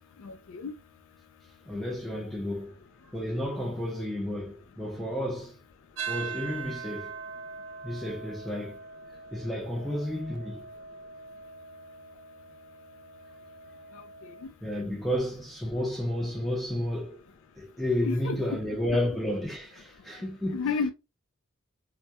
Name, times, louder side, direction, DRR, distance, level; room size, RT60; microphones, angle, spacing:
voice 1, 0.2-0.7 14.4-14.5 18.0-18.6 20.5-20.9, left 5 dB, 80° left, 0.3 m, -31 dB
voice 2, 1.7-2.7 3.1-5.5 6.1-7.1 7.8-8.8 9.3-10.7 14.6-17.2 17.5-20.6, left 1 dB, ahead, 0.6 m, -31 dB
sound 1, 6.0-14.5, right 5 dB, 65° right, 0.3 m, -42 dB
2.3 x 2.0 x 2.7 m
head